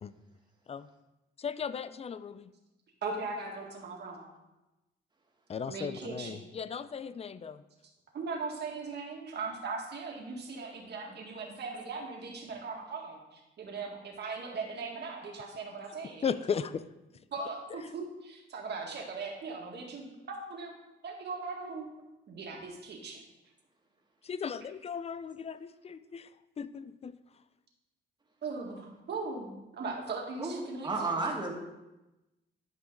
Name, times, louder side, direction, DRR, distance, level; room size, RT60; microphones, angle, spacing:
voice 1, 1.4-2.5 5.5-7.6 16.2-16.8 24.2-26.3 26.6-27.1, left 6 dB, 30° left, 14 dB, 0.4 m, -36 dB
voice 2, 3.0-4.4 5.7-6.4 8.1-16.3 17.3-20.7 21.0-22.0 22.3-23.2 28.4-31.2, right 4 dB, 60° right, 0 dB, 1.9 m, -39 dB
voice 3, 30.4-31.5, right 3 dB, 20° right, 0 dB, 1.8 m, -32 dB
11.5 x 5.1 x 3.8 m, 0.99 s
cardioid pair, 90°, 20 cm